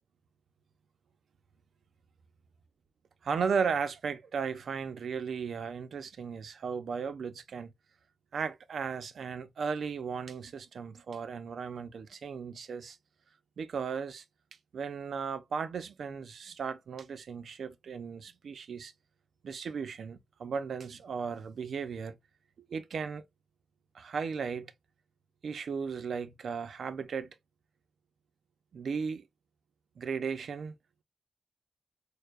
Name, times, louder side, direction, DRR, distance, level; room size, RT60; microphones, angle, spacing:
voice 1, 3.2-7.7 8.3-13.0 13.6-14.2 14.7-18.9 19.4-22.2 22.7-23.2 23.9-24.7 25.4-27.4 28.7-29.2 30.0-30.7, right 6 dB, 80° right, 0.7 m, -36 dB
6.6 x 2.3 x 2.5 m
cardioid pair, 90°, 0 cm